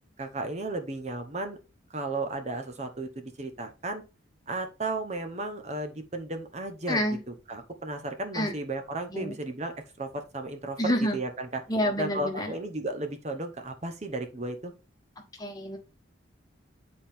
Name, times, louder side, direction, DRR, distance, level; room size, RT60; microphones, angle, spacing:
voice 1, 0.2-1.6 1.9-4.0 4.5-7.0 7.3-11.6 12.0-14.7, right 2 dB, 35° right, 0.9 m, -34 dB
voice 2, 6.9-7.2 8.3-8.5 9.1-9.3 10.8-11.2 11.7-12.5 15.4-15.8, equal, 20° left, 1.3 m, -28 dB
9.7 x 4.3 x 3.5 m
head